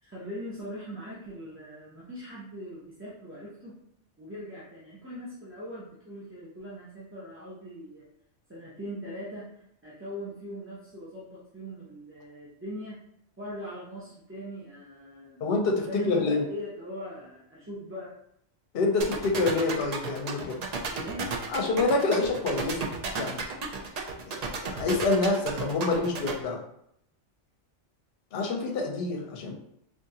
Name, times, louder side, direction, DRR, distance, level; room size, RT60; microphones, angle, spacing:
voice 1, 0.0-3.7 4.2-8.1 8.5-9.4 9.8-13.0 13.4-15.4 15.9-18.1 20.9-21.3, equal, 15° right, -9 dB, 0.5 m, -40 dB
voice 2, 15.4-16.4 18.7-20.6 21.5-22.8 23.2-23.4 24.3-26.6 28.3-29.5, left 3 dB, 60° left, 1 dB, 0.8 m, -27 dB
sound 1, 19.0-26.3, right 5 dB, 70° right, 0.3 m, -33 dB
3.6 x 2.5 x 2.7 m, 0.72 s
omnidirectional pair, 1.2 m